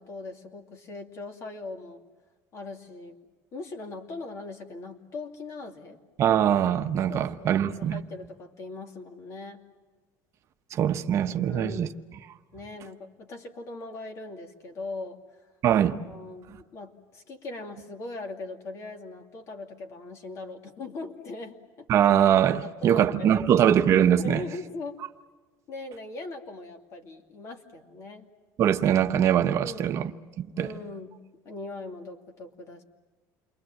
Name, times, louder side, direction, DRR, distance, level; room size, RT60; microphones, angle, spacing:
voice 1, 0.0-2.0 2.5-3.2 3.5-6.0 7.1-7.6 7.9-9.6 11.4-12.0 12.5-15.2 16.0-21.9 22.6-23.6 24.2-25.0 25.7-28.3 29.6-29.9 30.5-31.2 31.4-32.8, left 2 dB, 45° left, 2.6 m, -40 dB
voice 2, 6.2-8.0 10.7-11.9 15.6-16.0 21.9-24.4 28.6-30.1 30.4-30.7, right 9 dB, 45° right, 0.9 m, -22 dB
29.0 x 23.5 x 7.7 m
cardioid pair, 150°, 7 cm